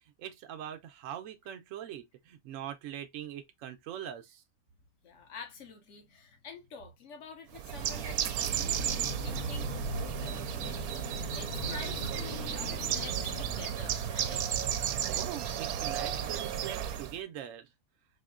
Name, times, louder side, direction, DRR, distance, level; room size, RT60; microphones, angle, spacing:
voice 1, 0.2-4.4 15.0-17.7, right 10 dB, 65° right, 0.9 m, -42 dB
voice 2, 5.0-14.7, left 5 dB, 55° left, 1.3 m, -48 dB
Bird, 7.5-17.2, right 9 dB, 90° right, 1.1 m, -34 dB
sound 1, 8.7-13.7, left 2 dB, 85° left, 2.5 m, -41 dB
4.3 x 2.7 x 2.4 m
omnidirectional pair, 1.5 m